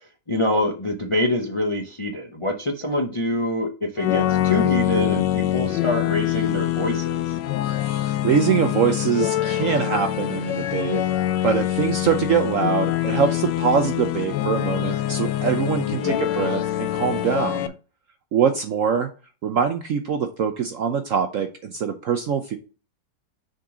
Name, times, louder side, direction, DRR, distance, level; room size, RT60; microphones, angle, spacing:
voice 1, 0.3-7.4 16.0-16.2, left 1 dB, 35° left, 3 dB, 0.5 m, -25 dB
sound 1, 4.0-17.7, left 13 dB, 85° left, 1.3 m, -24 dB
voice 2, 7.6-11.0 11.4-17.7 18.3-19.1 19.4-22.6, right 7 dB, 65° right, 7 dB, 0.8 m, -23 dB
6.4 x 3.9 x 4.8 m, 0.35 s
omnidirectional pair, 2.0 m